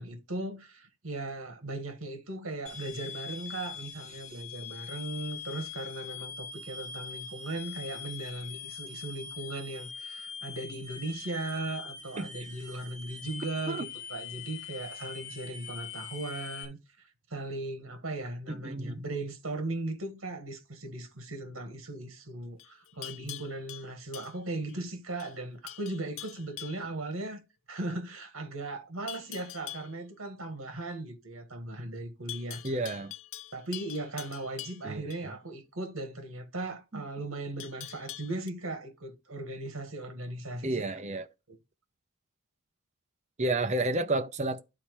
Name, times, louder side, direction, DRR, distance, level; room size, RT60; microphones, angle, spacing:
voice 1, 0.0-27.4 27.7-32.6 33.5-40.8 41.5-41.6, right 2 dB, 70° right, 1.7 m, -38 dB
sound 1, 2.7-16.7, left 6 dB, 35° left, 1.6 m, -43 dB
voice 2, 18.5-19.0 32.6-33.1 34.8-35.3 40.6-41.3 43.4-44.6, right 2 dB, 35° right, 0.6 m, -31 dB
Livestock farm animals working animals, 22.6-24.8 25.2-25.4 25.7-26.9 29.1-29.9 32.3-35.2 37.6-38.5, left 14 dB, 65° left, 0.4 m, -44 dB
11.5 x 4.2 x 3.1 m
head